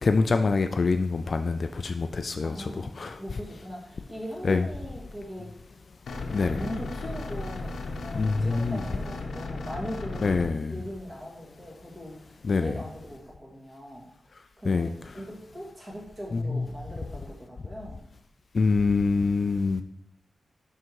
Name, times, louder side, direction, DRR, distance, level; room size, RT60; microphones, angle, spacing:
voice 1, 0.0-2.7 3.0-3.2 4.5-4.6 6.3-6.6 8.1-8.8 10.2-10.7 12.4-12.7 14.7-14.9 16.5-16.6 18.5-19.8, left 4 dB, 40° left, 8 dB, 0.3 m, -25 dB
voice 2, 2.4-2.9 3.2-5.5 6.3-14.1 14.6-18.0, equal, 25° right, -3 dB, 2.0 m, -40 dB
sound 1, 6.1-10.5, left 3 dB, 75° left, 0.8 m, -35 dB
6.1 x 5.6 x 4.6 m, 0.73 s
wide cardioid pair, 180°, 0 cm